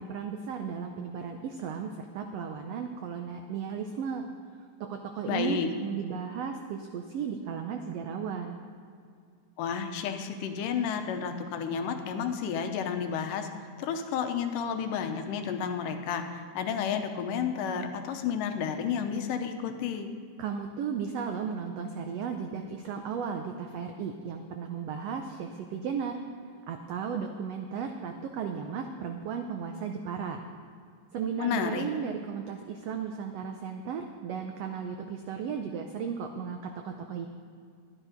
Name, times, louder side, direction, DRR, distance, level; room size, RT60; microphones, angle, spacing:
voice 1, 0.0-4.3 4.8-8.6 20.4-26.2 26.7-30.4 31.1-36.6 36.8-37.3, right 6 dB, 85° right, 5 dB, 1.4 m, -35 dB
voice 2, 5.3-5.7 9.6-20.1 31.4-31.9, left 7 dB, 85° left, 6 dB, 2.5 m, -31 dB
11.5 x 11.0 x 5.1 m, 2.3 s
omnidirectional pair, 3.7 m